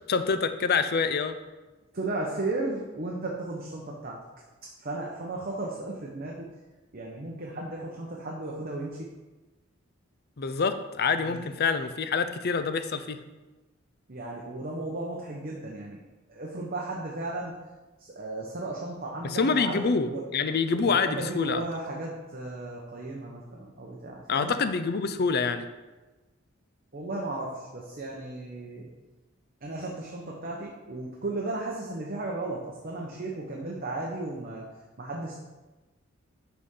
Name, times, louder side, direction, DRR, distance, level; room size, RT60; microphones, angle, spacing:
voice 1, 0.1-1.4 10.4-13.2 19.2-21.6 24.3-25.7, left 5 dB, 50° left, 10 dB, 0.5 m, -26 dB
voice 2, 1.9-4.2 4.8-6.5 6.9-9.1 11.1-11.5 14.1-16.0 16.3-17.6 18.0-20.2 20.8-24.6 26.9-28.9 29.6-34.7 35.0-35.4, right 2 dB, 45° right, -2 dB, 1.0 m, -35 dB
11.0 x 4.2 x 3.8 m, 1.2 s
head